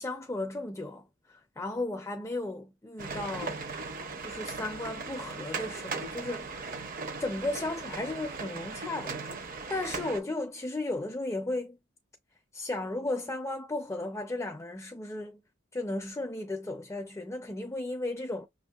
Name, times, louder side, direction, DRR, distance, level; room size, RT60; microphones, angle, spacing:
voice 1, 0.0-3.6 4.2-6.6 7.2-11.8 12.5-15.4 15.7-18.5, left 2 dB, 15° left, 0.4 m, -35 dB
sound 1, 3.0-10.2, right 4 dB, 45° right, 0.8 m, -38 dB
5.9 x 2.6 x 2.3 m
head